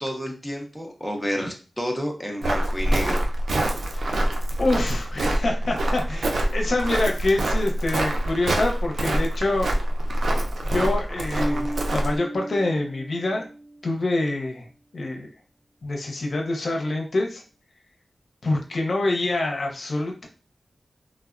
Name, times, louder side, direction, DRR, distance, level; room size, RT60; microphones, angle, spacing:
voice 1, 0.0-3.2, equal, ahead, 1 dB, 0.7 m, -30 dB
Walk footsteps, 2.4-12.2, right 1 dB, 85° right, 0.4 m, -25 dB
voice 2, 4.6-9.7 10.6-13.4 13.8-14.7 14.9-15.3 15.8-17.4 18.4-20.2, left 2 dB, 65° left, 1 dB, 0.6 m, -26 dB
Bass guitar, 11.4-14.0, right 1 dB, 70° right, 1.1 m, -35 dB
3.2 x 2.0 x 2.4 m, 0.35 s
wide cardioid pair, 70°, 0 cm